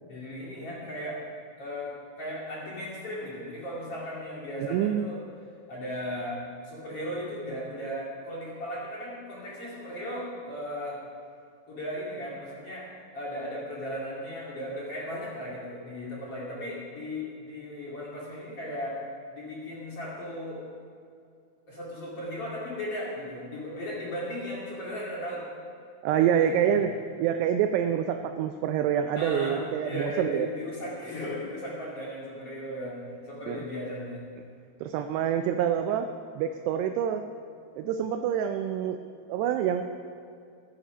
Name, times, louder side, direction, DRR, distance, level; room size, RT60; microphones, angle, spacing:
voice 1, 0.1-1.2 1.6-5.2 5.7-11.0 11.7-12.9 13.1-19.0 19.3-20.6 21.7-25.5 26.1-26.8 29.1-34.2, equal, 40° left, -5 dB, 2.6 m, -36 dB
voice 2, 4.6-5.1 26.0-26.9 27.2-30.5 33.5-33.7 34.8-37.2 37.8-39.0 39.3-39.8, right 9 dB, 85° right, 7 dB, 2.4 m, -26 dB
14.0 x 13.0 x 5.1 m, 2.4 s
omnidirectional pair, 5.4 m